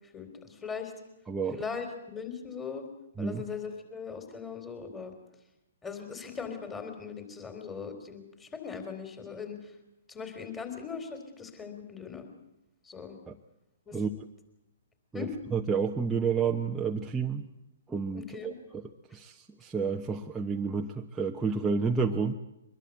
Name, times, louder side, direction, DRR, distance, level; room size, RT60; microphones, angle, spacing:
voice 1, 0.1-0.9 1.5-2.8 3.2-5.1 5.8-9.7 10.1-12.3 12.8-13.2 13.9-14.0 15.1-15.3 18.1-18.5, left 6 dB, 15° left, 6 dB, 3.9 m, -39 dB
voice 2, 1.3-1.6 3.2-3.4 13.3-13.4 13.9-14.1 15.1-17.5 17.9-18.8 19.1-22.3, right 5 dB, 10° right, 0 dB, 1.0 m, -30 dB
23.5 x 21.5 x 8.2 m, 0.89 s
figure-of-eight pair, 125°, 0 cm